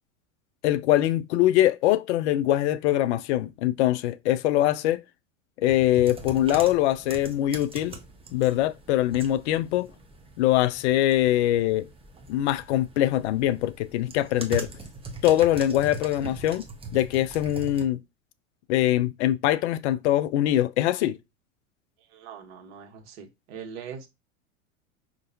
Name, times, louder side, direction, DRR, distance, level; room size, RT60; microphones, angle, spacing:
voice 1, 0.6-5.0 5.6-8.0 8.3-9.9 10.4-11.9 12.3-14.7 15.2-16.6 16.9-18.0 18.7-21.2, left 13 dB, 55° left, 0.6 m, -23 dB
sound 1, 5.7-17.9, right 3 dB, 15° right, 0.8 m, -42 dB
voice 2, 22.1-24.1, right 7 dB, 55° right, 1.4 m, -41 dB
5.3 x 2.9 x 2.6 m
hypercardioid pair, 90°, 40 cm